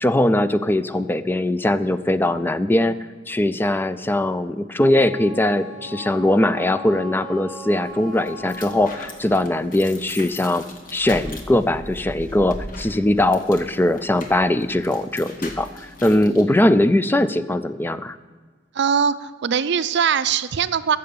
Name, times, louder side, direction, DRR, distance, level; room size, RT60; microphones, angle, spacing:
voice 1, 0.0-3.0 3.3-10.6 10.9-18.2, left 1 dB, 10° left, 13 dB, 0.4 m, -20 dB
Wind instrument woodwind instrument, 4.9-9.2, equal, 65° left, 3.3 m, -38 dB
sound 1, 7.8-16.4, left 1 dB, 45° left, 1.4 m, -39 dB
voice 2, 18.7-21.0, right 7 dB, 60° right, 14 dB, 0.5 m, -21 dB
14.5 x 6.8 x 6.8 m, 1.5 s
head